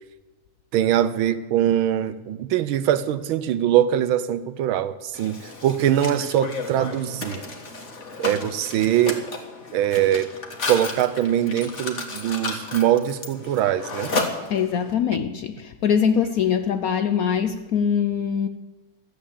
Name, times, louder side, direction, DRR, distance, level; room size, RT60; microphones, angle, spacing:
voice 1, 0.7-7.4 8.2-9.2 9.7-10.3 10.7-14.1, right 11 dB, 90° right, 14 dB, 1.6 m, -22 dB
Mechanisms, 5.1-14.9, left 3 dB, 40° left, 1.8 m, -33 dB
voice 2, 14.5-18.5, left 7 dB, 65° left, 9 dB, 0.9 m, -23 dB
13.5 x 8.2 x 8.6 m, 1.2 s
omnidirectional pair, 2.2 m